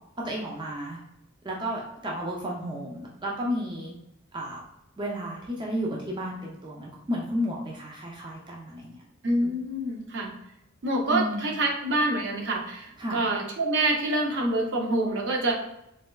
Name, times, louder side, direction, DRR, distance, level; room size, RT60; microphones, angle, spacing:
voice 1, 0.2-1.0 1.4-4.0 4.3-4.6 5.0-9.0 11.1-11.4 13.0-13.2, equal, 20° right, -2 dB, 0.4 m, -32 dB
voice 2, 9.2-10.3 10.8-15.5, right 1 dB, 60° right, 0 dB, 0.6 m, -26 dB
4.1 x 2.2 x 2.2 m, 0.84 s
head